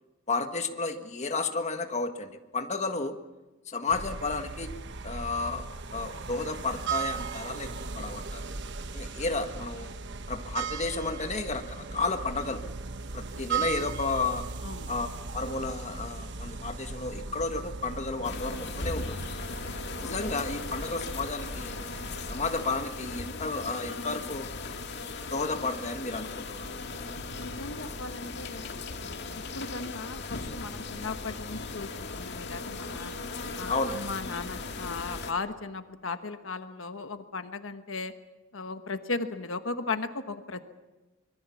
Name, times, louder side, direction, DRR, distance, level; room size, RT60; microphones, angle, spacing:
voice 1, 0.3-3.2 3.7-4.7 5.0-5.6 5.9-7.7 7.9-8.4 8.9-9.9 10.3-12.6 13.1-14.4 14.9-15.1 15.3-19.3 20.0-21.7 22.3-24.5 25.3-26.7 33.7-34.0, left 3 dB, 35° left, 6 dB, 1.6 m, -32 dB
sound 1, 3.9-22.7, right 4 dB, 60° right, 1.2 m, -37 dB
sound 2, 18.2-35.3, left 3 dB, 60° left, 2.1 m, -38 dB
voice 2, 27.3-33.1 33.5-38.1 38.5-40.6, left 3 dB, 80° left, 8 dB, 1.3 m, -37 dB
25.0 x 22.5 x 7.2 m, 1.1 s
head